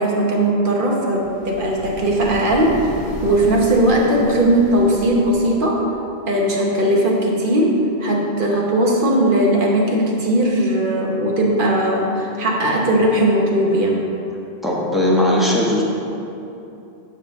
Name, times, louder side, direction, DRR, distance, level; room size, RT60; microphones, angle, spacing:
voice 1, 0.0-2.9 3.2-5.9 6.3-14.1, right 1 dB, 55° right, -1 dB, 1.3 m, -18 dB
sound 1, 1.1-5.9, equal, 35° left, 1.2 m, -35 dB
voice 2, 14.6-15.8, left 1 dB, ahead, -5 dB, 1.3 m, -18 dB
10.0 x 3.4 x 6.7 m, 2.8 s
omnidirectional pair, 1.0 m